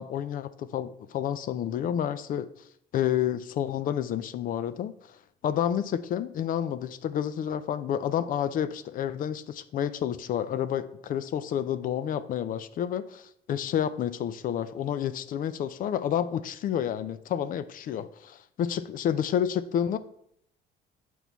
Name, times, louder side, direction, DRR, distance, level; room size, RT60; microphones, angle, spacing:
voice 1, 0.0-2.5 2.9-20.0, left 9 dB, 55° left, 13 dB, 0.5 m, -30 dB
8.0 x 4.6 x 4.0 m, 0.72 s
cardioid pair, 110°, 17 cm